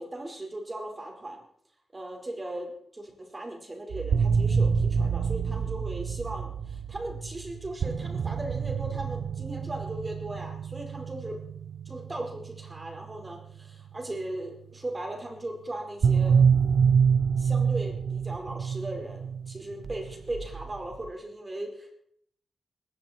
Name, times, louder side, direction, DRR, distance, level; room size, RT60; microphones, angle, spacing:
voice 1, 0.0-1.4 1.9-11.4 11.9-16.4 17.4-21.9, right 1 dB, 25° right, 2 dB, 5.1 m, -38 dB
sound 1, 3.9-14.1 16.0-21.1, right 6 dB, 65° right, 1.0 m, -27 dB
19.5 x 16.0 x 4.6 m, 0.66 s
wide cardioid pair, 105°, 0 cm